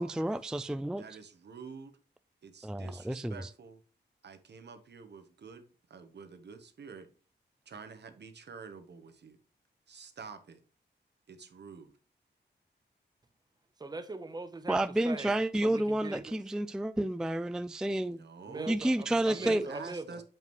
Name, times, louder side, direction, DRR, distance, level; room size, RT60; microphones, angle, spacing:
voice 1, 0.0-1.0 2.6-3.5 14.7-18.2 18.7-19.7, right 1 dB, 5° right, 0.3 m, -30 dB
voice 2, 1.0-2.0 2.4-3.8 4.2-5.6 5.9-7.1 7.7-9.4 9.9-10.6 11.3-11.9 18.1-18.8 19.3-20.2, right 5 dB, 70° right, 1.1 m, -47 dB
voice 3, 13.8-14.8 15.0-15.3 15.6-16.4 18.5-20.2, right 3 dB, 20° right, 0.8 m, -41 dB
7.2 x 5.4 x 3.0 m
wide cardioid pair, 95°, 19 cm